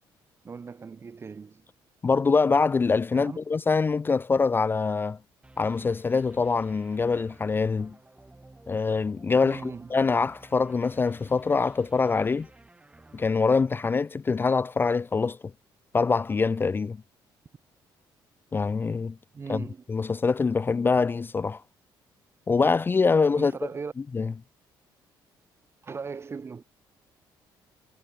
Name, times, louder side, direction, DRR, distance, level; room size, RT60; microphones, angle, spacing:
voice 1, 0.4-1.7 3.1-3.4 9.4-9.9 19.3-19.8 23.3-23.9 25.8-26.6, right 5 dB, 30° right, 0.6 m, -38 dB
voice 2, 2.0-5.2 5.6-8.0 8.7-12.5 13.1-15.4 15.9-17.0 18.5-19.2 19.5-19.6 19.9-21.6 22.5-23.5 24.1-24.3, left 4 dB, 25° left, 0.4 m, -24 dB
sound 1, 5.4-14.5, right 2 dB, 15° right, 1.5 m, -55 dB
cardioid pair, 105°, 9 cm